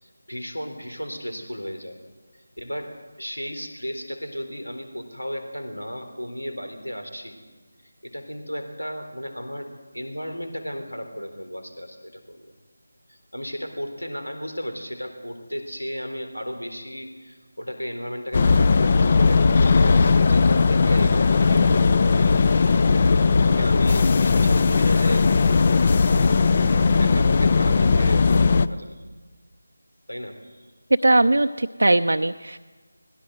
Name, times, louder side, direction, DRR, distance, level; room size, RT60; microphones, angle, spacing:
voice 1, 0.0-2.0 2.6-2.9 3.2-7.4 8.0-12.5 13.1-22.7 23.1-25.3 26.5-29.0 30.1-30.7, equal, 85° left, 6 dB, 3.8 m, -34 dB
sound 1, 18.3-28.7, left 4 dB, 30° left, 0.6 m, -18 dB
voice 2, 31.0-32.6, right 2 dB, 60° right, 6 dB, 0.6 m, -19 dB
20.5 x 16.5 x 7.9 m, 1.4 s
figure-of-eight pair, 165°, 0 cm